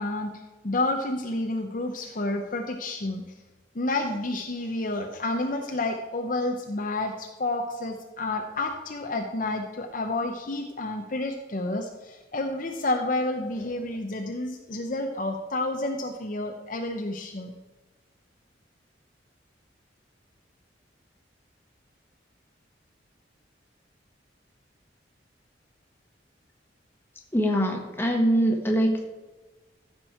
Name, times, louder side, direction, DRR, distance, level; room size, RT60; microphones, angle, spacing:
voice 1, 0.0-3.2 3.7-17.5, left 2 dB, 45° left, 3 dB, 0.8 m, -30 dB
voice 2, 27.3-29.0, equal, 10° left, 1 dB, 1.5 m, -23 dB
14.5 x 6.2 x 4.4 m, 1.2 s
head